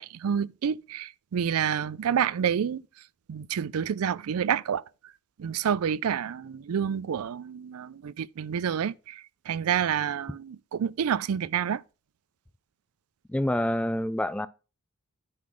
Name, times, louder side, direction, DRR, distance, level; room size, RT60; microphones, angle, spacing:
voice 1, 0.0-2.8 3.3-4.8 5.4-9.1 9.5-11.8, right 8 dB, 80° right, 0.4 m, -28 dB
voice 2, 13.3-14.5, left 1 dB, 5° left, 0.3 m, -27 dB
9.4 x 3.9 x 6.3 m
head